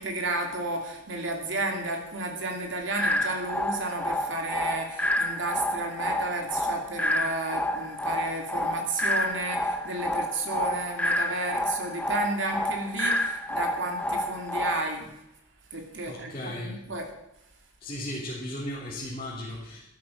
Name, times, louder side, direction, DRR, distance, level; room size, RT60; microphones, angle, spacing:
voice 1, 0.0-15.1 15.7-17.1, right 2 dB, 65° right, 3 dB, 2.7 m, -32 dB
sound 1, 3.0-15.0, left 1 dB, 5° left, 0.6 m, -29 dB
voice 2, 16.1-16.8 17.8-19.9, left 1 dB, 30° left, -6 dB, 3.3 m, -36 dB
13.0 x 13.0 x 5.9 m, 0.85 s
head